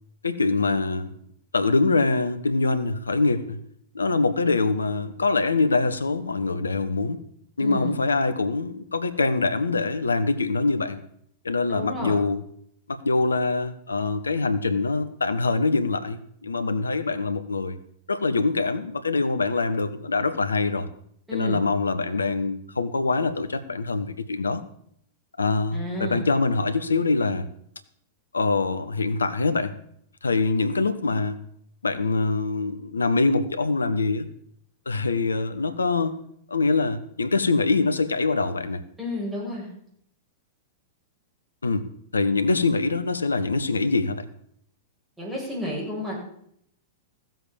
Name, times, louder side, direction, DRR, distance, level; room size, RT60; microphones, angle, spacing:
voice 1, 0.2-1.1 1.5-3.6 3.9-7.2 7.6-11.0 11.4-12.4 12.9-17.8 18.1-20.9 21.3-24.6 25.4-27.5 28.3-29.7 30.2-31.4 31.8-34.3 34.9-36.1 36.5-38.8 41.6-41.9 42.1-44.3, left 3 dB, 80° left, 12 dB, 1.1 m, -24 dB
voice 2, 7.6-8.0 11.7-12.1 21.3-21.6 25.7-26.2 39.0-39.7 45.2-46.2, left 1 dB, 5° right, -5 dB, 7.4 m, -31 dB
15.0 x 7.7 x 7.0 m, 0.69 s
figure-of-eight pair, 100°, 0 cm